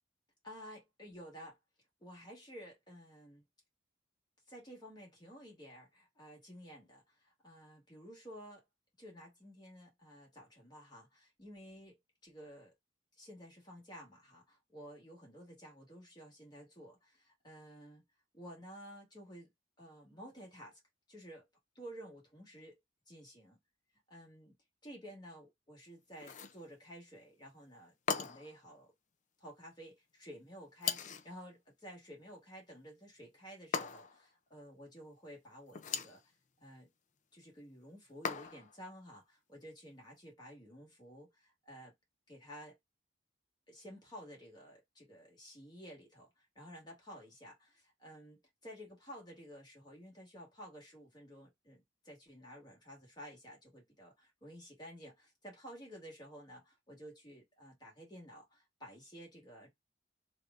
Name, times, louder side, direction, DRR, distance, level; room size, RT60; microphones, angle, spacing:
voice 1, 0.4-1.6 2.0-3.4 4.5-8.6 9.0-12.7 13.2-18.0 18.3-19.5 19.8-20.8 21.1-21.5 21.8-22.8 23.1-23.6 24.1-24.6 24.8-28.9 29.4-36.3 36.6-36.9 37.3-41.9 42.3-42.8 43.7-59.7, equal, 20° left, 1.8 m, -53 dB
sound 1, 26.2-26.6 28.1-28.6 30.8-31.3 33.7-34.3 35.7-36.2 38.2-38.8, left 6 dB, 40° left, 0.4 m, -38 dB
3.3 x 2.6 x 3.5 m
head